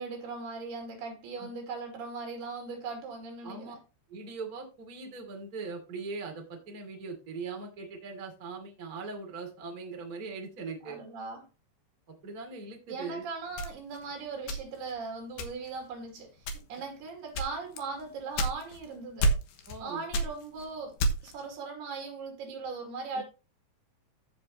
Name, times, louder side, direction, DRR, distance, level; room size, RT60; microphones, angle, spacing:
voice 1, 0.0-3.8 10.8-11.5 12.9-19.4 19.8-20.9 21.2-23.2, right 4 dB, 75° right, 4.4 m, -39 dB
voice 2, 3.4-3.8 4.1-11.0 12.2-13.2 19.7-20.0 23.1-23.2, right 4 dB, 25° right, 2.3 m, -40 dB
sound 1, 13.6-15.0 15.4-15.8 16.4-16.9 17.3-18.9 19.2-19.8 20.1-21.4, right 1 dB, 80° left, 3.2 m, -30 dB
15.5 x 5.3 x 2.9 m
omnidirectional pair, 4.7 m